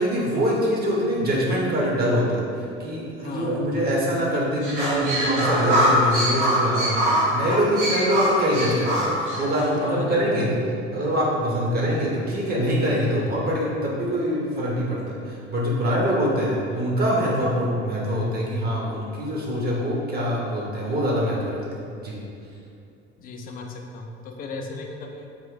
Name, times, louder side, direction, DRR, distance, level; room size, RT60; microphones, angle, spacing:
voice 1, 0.0-10.5 10.9-21.6 22.0-22.1, equal, 25° right, -4 dB, 0.8 m, -24 dB
voice 2, 3.2-3.7 9.8-10.7 15.7-16.0 23.2-25.3, left 3 dB, 25° left, 2 dB, 0.4 m, -36 dB
sound 1, 4.6-9.7, equal, 75° right, 1.2 m, -23 dB
3.6 x 2.5 x 3.6 m, 2.5 s
figure-of-eight pair, 65°, 35 cm